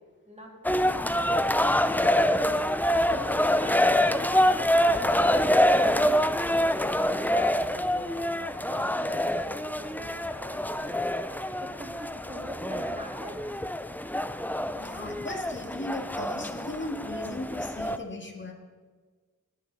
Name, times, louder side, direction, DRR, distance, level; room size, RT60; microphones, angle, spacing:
voice 1, 0.3-2.6 3.1-8.3 8.6-11.0 11.6-13.4, equal, 20° right, -1 dB, 3.4 m, -44 dB
sound 1, 0.6-18.0, left 1 dB, 5° left, 0.6 m, -26 dB
voice 2, 14.7-18.5, left 1 dB, 35° left, 2 dB, 1.9 m, -37 dB
18.5 x 9.5 x 4.0 m, 1.4 s
wide cardioid pair, 55°, 33 cm